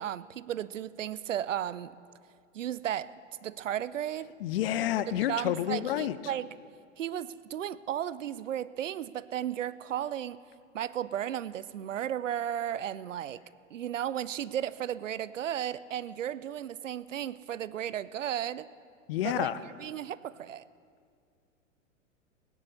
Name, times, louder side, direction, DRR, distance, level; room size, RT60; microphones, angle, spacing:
voice 1, 0.0-1.9 2.5-3.1 3.4-4.3 5.2-6.5 7.0-10.4 10.7-13.4 13.7-18.7 19.2-19.5 19.8-20.6, right 10 dB, 70° right, 18 dB, 0.6 m, -34 dB
voice 2, 4.4-6.2 19.1-19.6, left 12 dB, 50° left, 15 dB, 0.6 m, -29 dB
17.0 x 9.8 x 6.8 m, 2.2 s
figure-of-eight pair, 100°, 39 cm